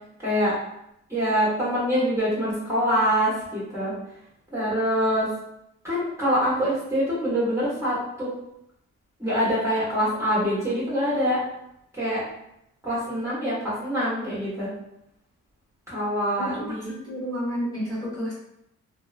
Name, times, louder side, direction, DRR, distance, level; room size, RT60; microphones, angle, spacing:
voice 1, 0.2-0.6 1.1-3.9 4.5-5.3 5.8-8.3 9.2-11.4 11.9-12.2 12.8-14.7 15.9-16.9, equal, 10° right, -10 dB, 1.4 m, -25 dB
voice 2, 16.4-18.3, equal, 10° left, -9 dB, 1.4 m, -31 dB
2.8 x 2.0 x 2.5 m, 0.80 s
cardioid pair, 90°, 30 cm